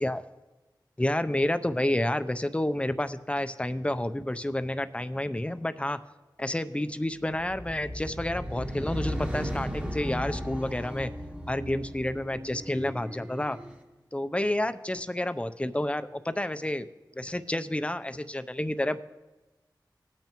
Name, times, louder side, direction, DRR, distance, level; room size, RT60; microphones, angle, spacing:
voice 1, 1.0-6.0 6.4-11.1 11.5-13.6 14.1-16.9 17.2-19.0, left 1 dB, 15° left, 10 dB, 0.6 m, -30 dB
sound 1, 7.3-13.8, equal, 15° right, 1.2 m, -36 dB
18.5 x 8.9 x 3.0 m, 1.1 s
wide cardioid pair, 50°, 8 cm